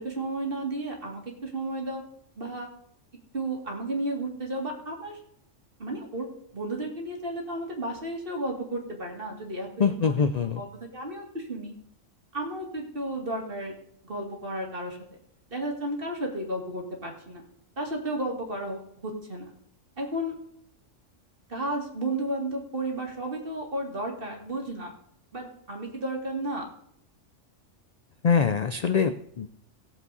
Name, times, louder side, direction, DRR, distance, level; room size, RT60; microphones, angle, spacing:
voice 1, 0.0-2.0 2.4-2.7 3.3-5.2 5.8-10.7 10.9-11.7 12.3-13.7 14.0-15.0 15.5-17.4 17.8-19.5 20.0-20.3 21.5-24.9 25.3-26.7, right 1 dB, 45° right, 1 dB, 2.4 m, -33 dB
voice 2, 9.8-10.6 28.2-29.5, left 6 dB, 60° left, 10 dB, 0.4 m, -24 dB
17.0 x 7.2 x 4.1 m, 0.68 s
omnidirectional pair, 1.3 m